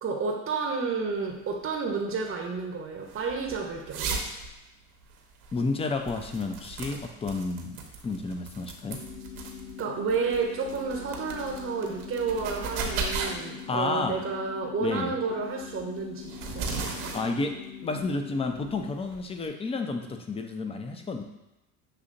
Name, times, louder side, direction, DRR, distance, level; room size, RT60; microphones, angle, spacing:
voice 1, 0.0-4.2 9.8-16.7, right 5 dB, 30° right, 0 dB, 0.8 m, -31 dB
sound 1, 1.2-19.5, right 4 dB, 65° right, 1.0 m, -38 dB
voice 2, 5.5-7.8 8.0-9.0 13.7-14.2 14.8-15.1 17.1-17.5 17.8-21.2, left 3 dB, 15° left, 5 dB, 0.4 m, -31 dB
sound 2, 8.9-18.9, left 8 dB, 85° left, 0.5 m, -43 dB
6.7 x 2.8 x 2.5 m, 0.94 s
hypercardioid pair, 75°, 43 cm